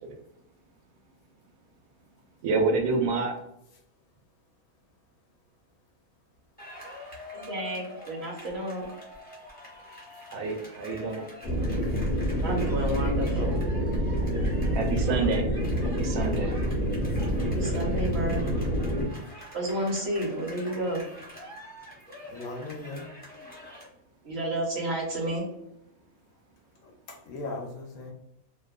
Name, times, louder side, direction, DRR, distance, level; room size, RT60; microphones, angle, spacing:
voice 1, 2.4-3.3 10.3-11.2 14.8-15.4 16.0-16.5, right 4 dB, 85° right, 3 dB, 1.1 m, -27 dB
sound 1, 6.6-23.9, left 1 dB, 10° left, 0.5 m, -46 dB
voice 2, 7.3-8.9 12.4-13.6 17.4-18.4 19.5-21.0 24.2-25.4, right 1 dB, 55° right, -1 dB, 0.8 m, -31 dB
sound 2, 11.4-19.1, equal, 50° left, 0.7 m, -27 dB
voice 3, 22.3-23.1 26.8-28.1, left 2 dB, 70° left, 0 dB, 1.0 m, -38 dB
2.7 x 2.1 x 2.2 m, 0.82 s
omnidirectional pair, 1.5 m